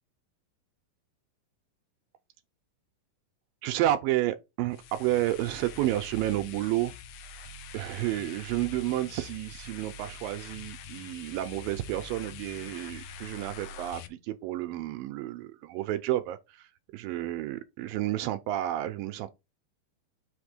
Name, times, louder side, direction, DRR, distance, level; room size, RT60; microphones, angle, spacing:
voice 1, 3.6-6.9 7.7-19.4, right 14 dB, 80° right, 2.2 m, -31 dB
sound 1, 4.7-14.1, left 5 dB, 80° left, 2.3 m, -45 dB
5.9 x 3.6 x 5.0 m
omnidirectional pair, 4.2 m